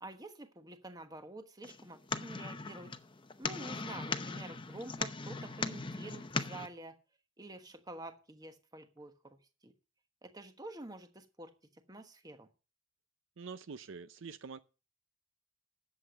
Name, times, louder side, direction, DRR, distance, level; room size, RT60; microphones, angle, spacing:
voice 1, 0.0-2.9 3.4-6.9 7.4-9.4 9.6-9.7 10.2-11.5 11.9-12.5, right 2 dB, 15° right, 1.2 m, -48 dB
sound 1, 1.6-6.7, left 4 dB, 20° left, 0.7 m, -39 dB
voice 2, 13.4-14.6, right 5 dB, 55° right, 0.5 m, -45 dB
11.0 x 8.0 x 6.4 m
head